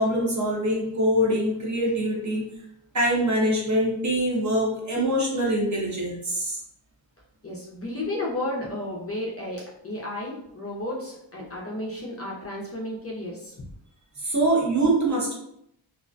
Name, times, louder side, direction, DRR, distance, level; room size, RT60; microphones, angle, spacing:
voice 1, 0.0-2.5 2.9-6.6 14.2-15.3, right 1 dB, 40° right, -3 dB, 0.5 m, -24 dB
voice 2, 7.4-13.7, left 1 dB, 30° left, -4 dB, 0.4 m, -33 dB
2.4 x 2.1 x 2.4 m, 0.77 s
wide cardioid pair, 160°, 49 cm